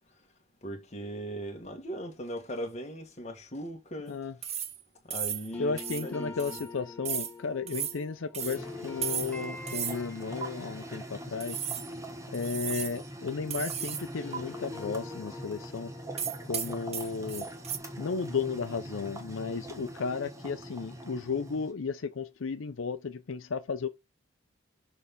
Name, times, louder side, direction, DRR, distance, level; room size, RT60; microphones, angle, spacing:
voice 1, 0.6-4.2 5.0-5.7 6.0-6.4 17.0-17.1, equal, 35° left, 1.6 m, -39 dB
sound 1, 4.4-4.8 5.1-5.5 5.8-6.1 6.4-6.7 7.0-7.3 7.7-8.0 8.3-8.6 9.0-9.4 9.7-10.0 10.4-10.5 11.4-11.9 12.3-13.0 13.5-14.1 14.3-14.4 16.2-17.8, right 9 dB, 35° right, 0.7 m, -35 dB
sound 2, 5.5-13.6 13.9-18.9, left 4 dB, 10° left, 1.1 m, -47 dB
voice 2, 5.6-11.6 12.3-15.9 16.4-17.5 18.0-23.9, left 5 dB, 80° left, 0.6 m, -34 dB
sound 3, 8.5-21.7, right 1 dB, 15° right, 1.2 m, -43 dB
6.5 x 3.4 x 5.4 m
head